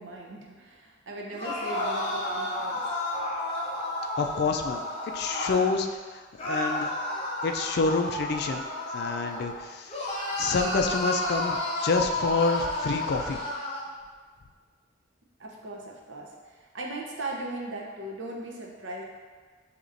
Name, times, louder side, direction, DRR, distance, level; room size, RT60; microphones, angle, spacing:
voice 1, 0.0-2.8 15.4-19.1, right 1 dB, 70° right, -1 dB, 0.7 m, -38 dB
sound 1, 1.3-5.7 6.4-9.6 9.9-13.9, left 1 dB, 30° left, 0.8 m, -31 dB
voice 2, 4.2-6.9 7.4-8.6 8.9-10.1 10.4-13.4, left 4 dB, 55° left, 5 dB, 0.3 m, -28 dB
6.5 x 2.9 x 2.5 m, 1.5 s
head